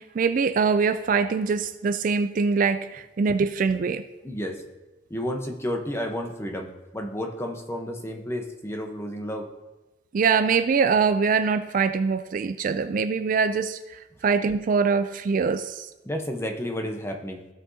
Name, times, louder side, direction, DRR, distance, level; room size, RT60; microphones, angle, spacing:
voice 1, 0.0-4.0 10.1-15.9, right 5 dB, 45° right, 10 dB, 0.3 m, -23 dB
voice 2, 4.2-4.6 5.1-9.5 14.1-14.2 16.0-17.5, equal, 15° left, 3 dB, 0.9 m, -31 dB
15.5 x 5.9 x 2.8 m, 1.1 s
head